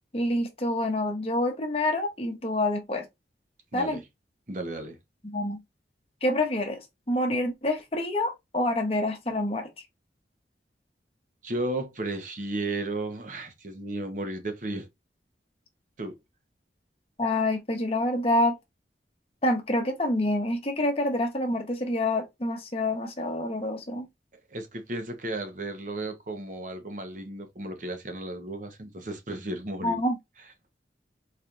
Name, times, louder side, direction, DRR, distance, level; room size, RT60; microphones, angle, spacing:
voice 1, 0.1-3.0 3.7-4.0 5.2-5.6 6.2-9.7 17.2-18.6 19.4-24.1 29.8-30.2, left 1 dB, 35° left, 0.9 m, -27 dB
voice 2, 4.5-5.0 11.4-14.9 16.0-16.2 24.5-30.0, right 2 dB, 45° right, 0.9 m, -34 dB
4.2 x 3.3 x 2.4 m
head